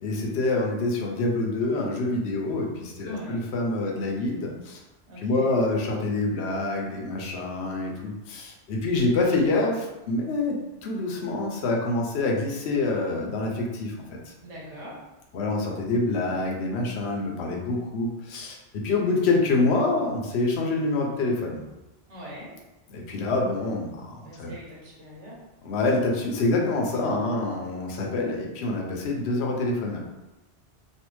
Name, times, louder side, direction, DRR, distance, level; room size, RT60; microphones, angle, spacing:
voice 1, 0.0-4.8 5.2-13.9 15.3-21.6 22.9-24.5 25.6-30.0, left 2 dB, 70° left, 0 dB, 0.9 m, -26 dB
voice 2, 3.0-3.4 5.1-5.5 14.4-15.0 22.1-22.6 24.2-25.4, equal, 85° right, -5 dB, 1.3 m, -41 dB
3.2 x 2.4 x 3.0 m, 1.0 s
omnidirectional pair, 1.2 m